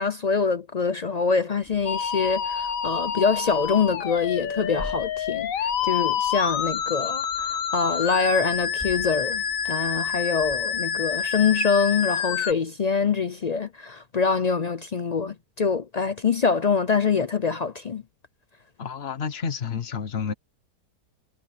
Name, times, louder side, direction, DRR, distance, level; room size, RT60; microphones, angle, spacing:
voice 1, 0.0-18.0, left 5 dB, 80° left, 0.3 m, -25 dB
sound 1, 1.6-11.6, equal, 10° left, 2.9 m, -47 dB
Musical instrument, 1.9-12.5, left 8 dB, 60° left, 1.2 m, -28 dB
voice 2, 18.8-20.3, left 6 dB, 40° left, 1.3 m, -30 dB
omnidirectional pair, 1.8 m